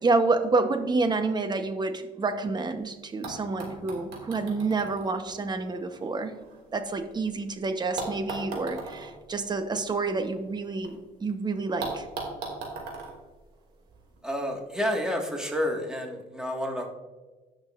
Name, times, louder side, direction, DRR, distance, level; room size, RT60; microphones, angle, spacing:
voice 1, 0.0-6.3 6.7-12.1, right 3 dB, 25° right, 8 dB, 0.9 m, -28 dB
sound 1, 2.8-2.9 3.2-7.3 8.0-10.9 11.2-11.3 11.8-14.2 15.2-15.3, right 3 dB, 90° right, 2.5 m, -40 dB
voice 2, 14.2-16.9, equal, 5° right, 1 dB, 1.7 m, -29 dB
16.5 x 6.3 x 2.5 m, 1.2 s
cardioid pair, 110°, 17 cm